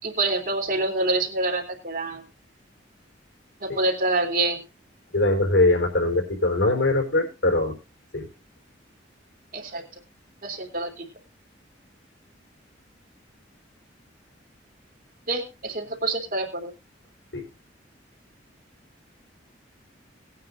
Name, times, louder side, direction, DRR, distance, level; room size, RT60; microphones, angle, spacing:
voice 1, 0.0-2.2 3.6-4.6 9.5-9.8 10.4-11.0 15.3-16.7, right 2 dB, 45° right, 3 dB, 3.2 m, -26 dB
voice 2, 5.1-7.8 8.1-8.3 17.3-17.4, left 2 dB, 75° left, 3 dB, 4.3 m, -22 dB
19.5 x 9.4 x 2.6 m, 0.29 s
head